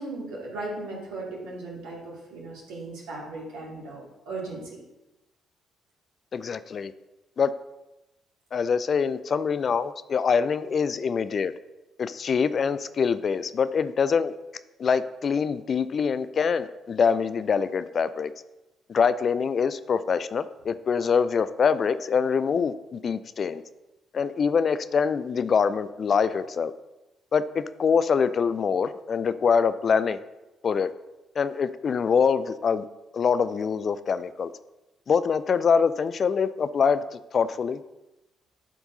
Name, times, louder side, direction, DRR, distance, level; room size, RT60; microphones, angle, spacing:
voice 1, 0.0-4.8, right 2 dB, 65° right, -4 dB, 2.4 m, -37 dB
voice 2, 6.3-6.9 7.4-7.5 8.5-11.5 12.0-14.3 14.8-18.3 18.9-23.6 24.1-26.7 27.3-30.2 30.6-30.9 31.4-32.9 33.1-34.5 35.1-37.8, left 6 dB, 45° left, 13 dB, 0.4 m, -24 dB
11.5 x 4.6 x 4.0 m, 0.99 s
figure-of-eight pair, 40°, 0 cm